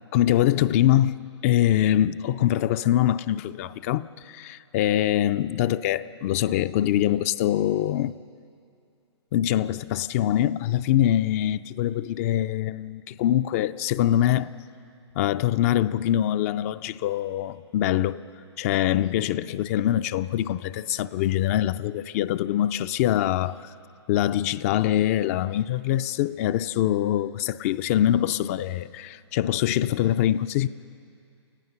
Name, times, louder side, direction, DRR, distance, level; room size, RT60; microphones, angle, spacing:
voice 1, 0.1-1.2 1.4-8.1 9.3-14.5 15.2-18.2 18.6-23.7 24.1-30.7, left 12 dB, 30° left, 0.4 m, -24 dB
29.0 x 16.0 x 5.7 m
hypercardioid pair, 125°, 15 cm